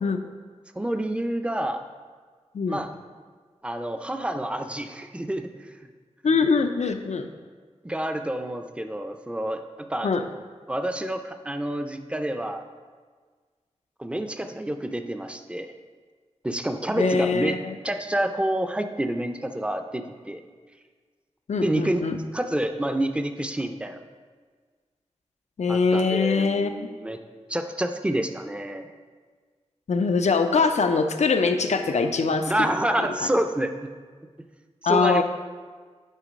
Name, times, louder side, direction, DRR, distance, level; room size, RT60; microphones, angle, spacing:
voice 1, 0.8-1.8 2.7-2.9 3.6-5.7 7.8-10.1 10.7-12.6 14.0-15.7 16.4-17.6 17.8-20.4 21.6-22.0 22.3-24.0 25.7-27.2 27.5-28.9 32.5-33.9 34.8-35.2, right 1 dB, 10° right, 7 dB, 0.5 m, -28 dB
voice 2, 6.2-7.3 10.0-10.3 17.0-17.7 21.5-22.2 25.6-26.7 29.9-32.7 33.2-33.3 34.8-35.2, left 4 dB, 80° left, 7 dB, 0.5 m, -23 dB
9.0 x 3.8 x 5.2 m, 1.5 s
wide cardioid pair, 70°, 12 cm